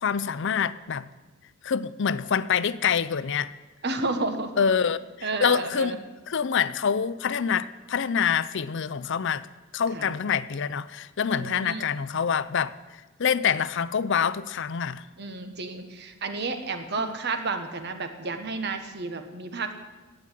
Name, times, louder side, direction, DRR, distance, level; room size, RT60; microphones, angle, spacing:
voice 1, 0.0-1.1 1.6-3.5 4.6-5.9 6.3-9.5 9.7-12.7 13.2-15.0 17.0-17.1, left 7 dB, 60° left, 0.5 m, -26 dB
voice 2, 3.8-4.6 5.2-6.0 9.9-10.1 11.3-11.9 15.2-19.7, right 3 dB, 55° right, 1.3 m, -31 dB
12.0 x 8.9 x 9.1 m
head